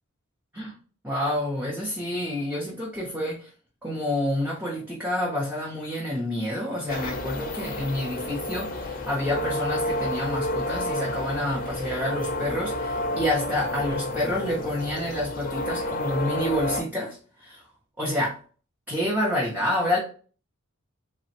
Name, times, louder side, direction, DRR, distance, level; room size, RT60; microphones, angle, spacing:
voice 1, 1.0-3.5 3.8-17.6 18.0-18.4 18.9-20.0, left 1 dB, 10° right, 0.6 m, -28 dB
sound 1, 6.9-16.8, left 1 dB, 40° left, 0.5 m, -30 dB
3.1 x 2.0 x 2.7 m
head